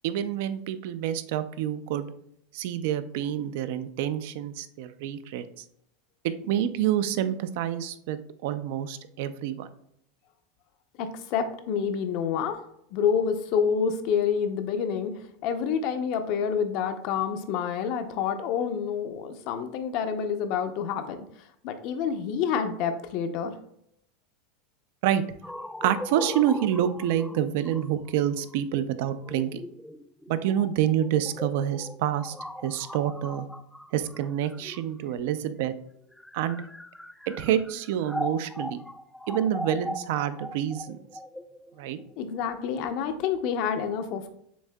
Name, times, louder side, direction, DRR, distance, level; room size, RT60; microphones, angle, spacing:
voice 1, 0.0-2.1 2.5-5.6 6.2-9.7 25.0-25.2 25.8-29.6 30.3-32.3 32.6-33.5 33.9-35.7 36.3-36.6 37.3-38.8 39.3-41.0 41.8-42.0, right 10 dB, 70° right, 12 dB, 0.4 m, -27 dB
voice 2, 11.0-12.6 12.9-21.2 21.6-23.5 42.2-44.3, left 7 dB, 55° left, 8 dB, 0.6 m, -28 dB
sound 1, 25.4-35.3 36.0-43.0, left 1 dB, ahead, 0.3 m, -39 dB
7.0 x 2.7 x 2.2 m, 0.72 s
supercardioid pair, 130°, 0 cm